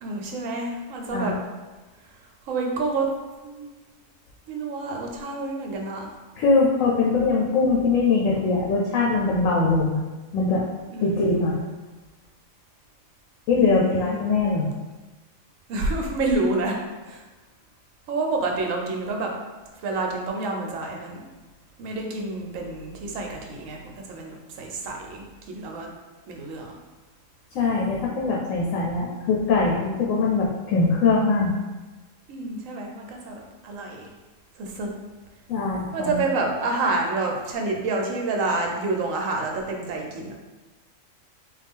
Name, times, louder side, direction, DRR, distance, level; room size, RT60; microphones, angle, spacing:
voice 1, 0.0-1.3 2.5-3.1 3.4-3.7 4.5-6.1 10.9-11.4 13.5-14.2 15.7-16.8 17.0-17.2 18.1-19.3 19.8-21.3 21.8-25.9 26.3-26.7 32.3-34.1 34.6-34.9 35.9-40.3, right 3 dB, 80° right, 1 dB, 1.0 m, -28 dB
voice 2, 6.4-10.0 10.3-10.6 11.0-11.6 13.5-14.7 27.5-31.5 35.5-36.2, left 4 dB, 85° left, -3 dB, 1.0 m, -22 dB
3.4 x 2.3 x 3.5 m, 1.2 s
omnidirectional pair, 1.4 m